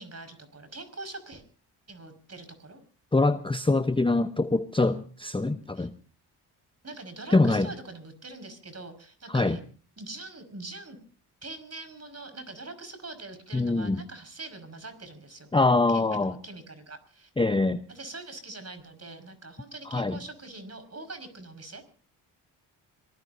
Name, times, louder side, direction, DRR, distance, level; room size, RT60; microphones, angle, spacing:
voice 1, 0.0-1.4 1.9-2.8 5.7-5.9 6.8-9.6 10.0-11.0 11.4-15.5 15.9-17.3 17.9-21.9, right 2 dB, 30° right, 10 dB, 5.4 m, -43 dB
voice 2, 3.1-5.9 7.3-7.7 9.3-9.6 13.5-14.0 15.5-16.3 17.4-17.8 19.9-20.2, left 2 dB, 10° left, 11 dB, 0.8 m, -24 dB
26.5 x 19.5 x 2.7 m, 0.39 s
supercardioid pair, 50°, 47 cm